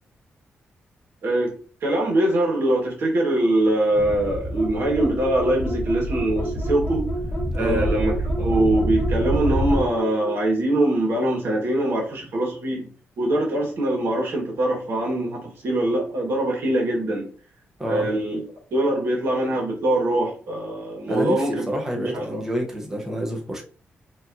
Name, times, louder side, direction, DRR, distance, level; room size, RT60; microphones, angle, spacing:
voice 1, 1.2-1.5 1.8-7.1 7.5-12.9 13.2-17.3 17.8-18.4 18.7-21.6 22.0-22.4, right 1 dB, 60° right, -1 dB, 1.5 m, -23 dB
sound 1, 3.9-9.8, equal, 35° right, 1.5 m, -27 dB
sound 2, 4.5-10.4, right 1 dB, 25° left, 0.9 m, -32 dB
voice 2, 7.6-7.9 17.8-18.1 21.1-23.6, equal, 10° right, 0 dB, 0.8 m, -28 dB
4.9 x 2.9 x 2.7 m, 0.42 s
wide cardioid pair, 165°, 4 cm